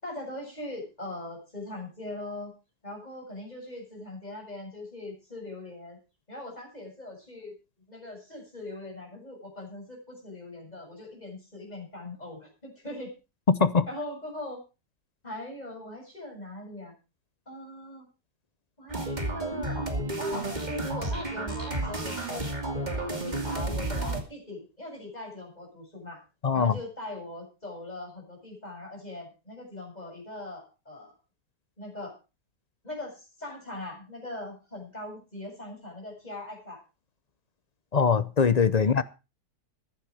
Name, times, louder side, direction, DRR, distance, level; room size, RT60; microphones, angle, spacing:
voice 1, 0.0-2.5 2.8-6.0 6.3-7.5 7.9-13.1 13.9-14.6 15.2-16.9 17.5-18.1 18.8-19.8 20.2-22.5 22.8-26.2 26.5-31.1 31.8-32.1 32.8-36.8 38.8-39.0, left 1 dB, 25° left, 7.4 m, -41 dB
voice 2, 13.5-13.9 26.4-26.7 37.9-39.0, left 5 dB, 45° left, 0.5 m, -22 dB
sound 1, 18.9-24.2, right 2 dB, 25° right, 2.7 m, -31 dB
15.0 x 11.5 x 4.9 m
omnidirectional pair, 1.7 m